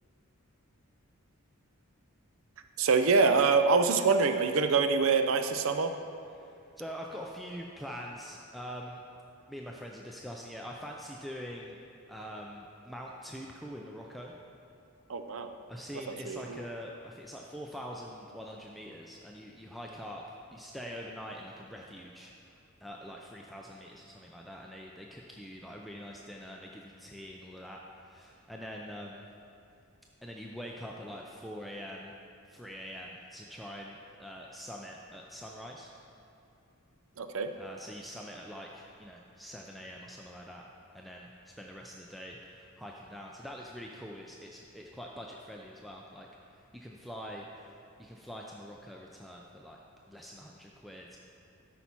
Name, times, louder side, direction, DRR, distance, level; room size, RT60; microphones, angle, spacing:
voice 1, 2.8-5.9 15.1-15.5 16.1-16.6 37.2-37.5, right 4 dB, 65° right, 8 dB, 0.5 m, -25 dB
voice 2, 6.4-9.0 9.5-11.8 12.1-14.3 15.7-29.3 30.2-32.2 32.5-35.9 37.6-40.6 40.9-46.3 46.7-49.8 50.1-51.2, equal, ahead, -1 dB, 0.4 m, -44 dB
12.5 x 5.6 x 4.4 m, 2.7 s
head